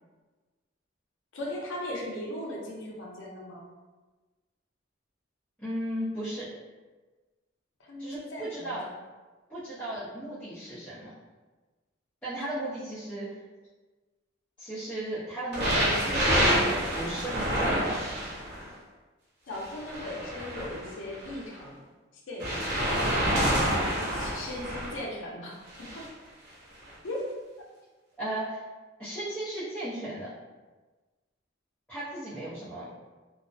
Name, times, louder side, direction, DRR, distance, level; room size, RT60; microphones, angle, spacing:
voice 1, 1.3-3.7 7.8-8.8 19.5-21.8 22.3-23.4 24.1-26.0 27.0-27.3, left 1 dB, 75° left, -2 dB, 0.5 m, -38 dB
voice 2, 5.6-6.5 8.0-8.8 9.5-11.1 12.2-13.3 14.6-18.0 28.2-28.6 29.0-30.3 31.9-32.9, right 1 dB, 5° left, -14 dB, 0.6 m, -35 dB
sound 1, 15.5-18.6 19.5-21.4 22.4-25.0 25.7-26.1 26.9-27.0, equal, 55° right, 0.7 m, -27 dB
2.4 x 2.0 x 2.5 m, 1.3 s
head